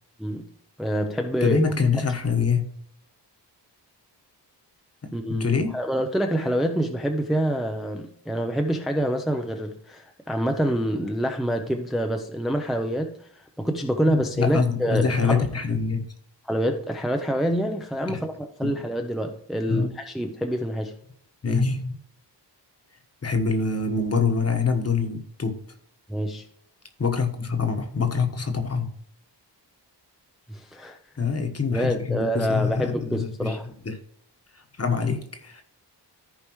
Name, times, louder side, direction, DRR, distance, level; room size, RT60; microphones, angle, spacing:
voice 1, 0.2-0.5 0.8-1.6 5.1-15.4 16.5-21.0 26.1-26.5 30.5-31.0 31.7-33.7, equal, ahead, 0.6 m, -26 dB
voice 2, 1.4-2.6 5.0-5.7 14.1-16.0 18.1-18.2 18.6-18.7 19.7-19.9 21.4-22.0 23.2-25.6 27.0-28.9 31.2-33.6 33.8-34.0 34.8-35.6, left 5 dB, 35° left, 1.3 m, -25 dB
14.5 x 5.0 x 3.1 m
wide cardioid pair, 170°, 43 cm